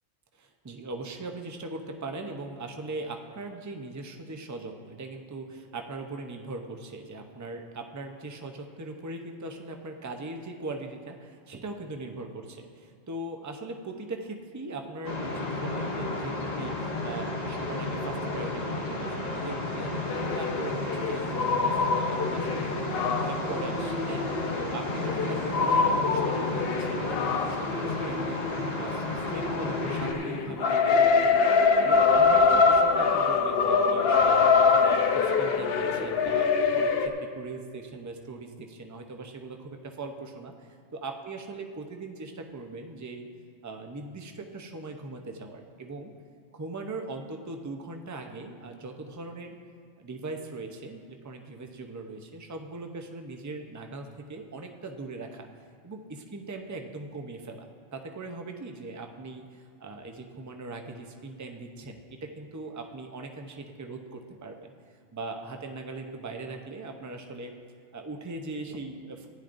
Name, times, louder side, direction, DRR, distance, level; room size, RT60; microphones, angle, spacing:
voice 1, 0.3-12.3 12.8-24.2 24.6-28.4 28.8-34.4 34.8-43.3 43.6-46.1 46.5-49.6 50.0-55.5 55.8-64.7 65.1-67.5 67.9-69.3, right 3 dB, 25° right, 4 dB, 0.4 m, -40 dB
sound 1, 15.0-30.1, left 2 dB, 35° left, 1.0 m, -32 dB
sound 2, 20.1-28.9 29.3-37.1, left 5 dB, 60° left, 0.8 m, -24 dB
15.5 x 10.5 x 2.6 m, 2.2 s
omnidirectional pair, 1.3 m